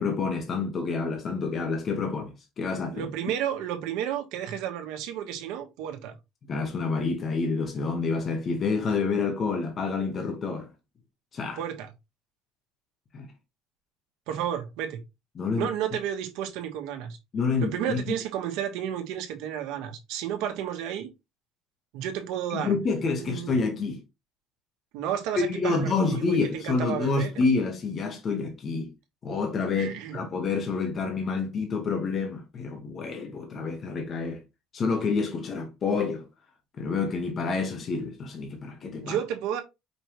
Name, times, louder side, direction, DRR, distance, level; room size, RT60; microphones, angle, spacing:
voice 1, 0.0-2.3 2.6-3.1 6.5-10.7 11.3-11.6 13.1-13.3 15.3-15.7 17.3-18.1 22.5-24.0 25.5-28.9 29.2-34.4 34.7-36.2 36.8-39.2, left 4 dB, 30° left, 1.0 m, -28 dB
voice 2, 2.9-6.2 11.6-11.9 14.3-15.0 15.6-17.2 17.6-21.1 21.9-22.7 23.2-23.5 24.9-27.3 29.8-30.2 39.0-39.6, right 10 dB, 75° right, 1.2 m, -32 dB
5.2 x 3.4 x 2.9 m
cardioid pair, 175°, 0 cm